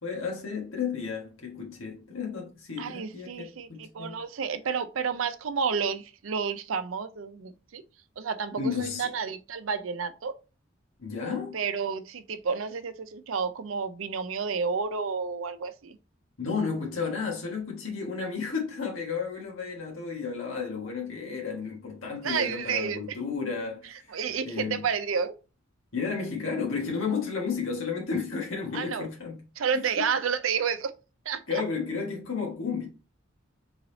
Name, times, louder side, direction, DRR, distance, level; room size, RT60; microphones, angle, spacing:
voice 1, 0.0-4.2 8.6-9.1 11.0-11.6 16.4-23.9 24.4-24.9 25.9-29.4 29.7-29.8 31.5-32.9, left 5 dB, 80° left, 1.3 m, -32 dB
voice 2, 2.8-7.8 8.2-10.3 11.5-16.0 22.2-23.2 24.1-25.3 28.7-29.1 29.6-30.9 31.3-31.4, right 6 dB, 85° right, 0.5 m, -30 dB
3.9 x 3.2 x 3.8 m
head